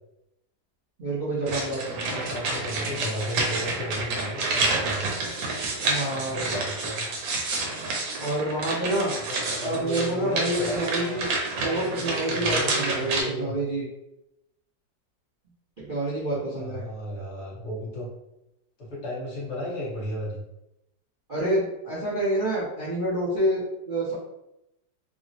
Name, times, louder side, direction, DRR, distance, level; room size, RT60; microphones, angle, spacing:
voice 1, 1.0-2.3 5.8-6.6 8.2-9.1 9.6-11.3 11.6-13.8 15.8-16.8 21.3-24.1, right 1 dB, 55° right, -10 dB, 0.5 m, -28 dB
sound 1, 1.5-13.2, right 3 dB, 80° right, 1.4 m, -29 dB
voice 2, 1.9-5.2 6.1-7.1 9.2-11.2 11.6-13.5 16.6-18.1 18.8-20.4, equal, 45° left, -6 dB, 1.1 m, -34 dB
3.4 x 2.0 x 2.7 m, 0.87 s
omnidirectional pair, 2.0 m